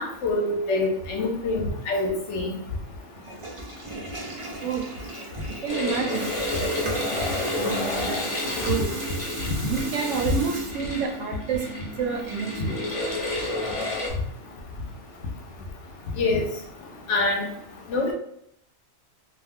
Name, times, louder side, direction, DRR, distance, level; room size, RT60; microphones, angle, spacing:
voice 1, 0.0-2.5 16.2-16.4 17.1-17.5 17.9-18.1, left 2 dB, 70° left, 1 dB, 0.8 m, -25 dB
Water tap faucet / Toilet flush, 3.1-11.2, right 1 dB, 45° right, 0.4 m, -37 dB
voice 2, 5.6-6.3 6.6-6.7 7.1-7.2 7.6-8.2 8.7-8.9 9.6-11.6 12.0-12.8, right 6 dB, 70° right, 2 dB, 0.9 m, -29 dB
sound 1, 5.7-14.1, left 1 dB, 35° left, 0.6 m, -30 dB
2.4 x 2.1 x 3.4 m, 0.73 s
omnidirectional pair, 1.4 m